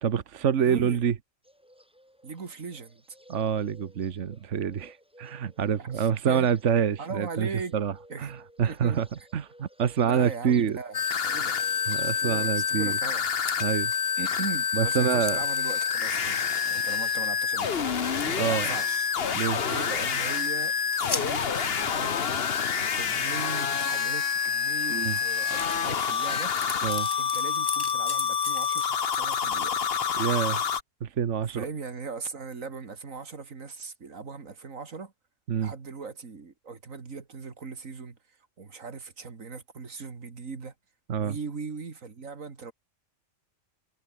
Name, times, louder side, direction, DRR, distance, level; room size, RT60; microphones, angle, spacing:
voice 1, 0.0-1.1 3.3-7.5 7.7-7.9 8.2-9.1 9.3-10.8 11.9-13.0 13.6-13.9 14.7-15.4 18.2-18.7 19.3-19.6 24.9-25.2 26.8-27.1 30.2-30.6 31.0-31.6 35.5-35.7 41.1-41.4, right 8 dB, 65° right, 1.4 m, -26 dB
voice 2, 0.6-1.0 2.2-3.0 5.8-6.5 7.0-7.8 8.1-8.3 8.6-9.0 10.0-11.0 11.3-11.5 12.0-13.3 14.2-17.9 18.5-19.1 19.6-20.7 21.0-22.1 22.4-26.5 27.2-29.9 31.5-35.1 35.5-40.7 41.2-42.7, right 4 dB, 90° right, 2.7 m, -39 dB
Bird, 1.4-17.9, equal, 5° right, 8.0 m, -57 dB
sound 1, 10.9-30.8, left 7 dB, 50° left, 1.3 m, -27 dB
sound 2, 13.3-13.6 14.2-14.3 14.5-14.6 15.2-18.6 18.9-19.6 19.9-20.2 20.5-21.3 22.1-22.3 25.1-25.2 25.4-26.2 26.5-29.9, left 3 dB, 20° left, 0.9 m, -40 dB
omnidirectional pair, 1.3 m